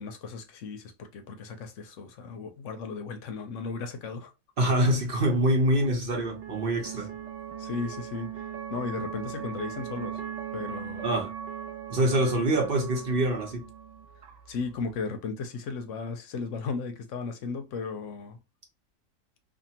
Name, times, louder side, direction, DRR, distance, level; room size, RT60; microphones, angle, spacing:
voice 1, 0.0-4.3 6.9-7.1 7.6-8.4 8.7-10.2 10.5-11.2 14.5-18.4, left 4 dB, 70° left, 0.9 m, -35 dB
voice 2, 4.6-7.1 11.0-11.3 11.9-13.6, right 1 dB, 50° right, 0.9 m, -25 dB
sound 1, 5.4-15.0, right 9 dB, 75° right, 0.4 m, -40 dB
2.6 x 2.5 x 2.7 m
omnidirectional pair, 1.4 m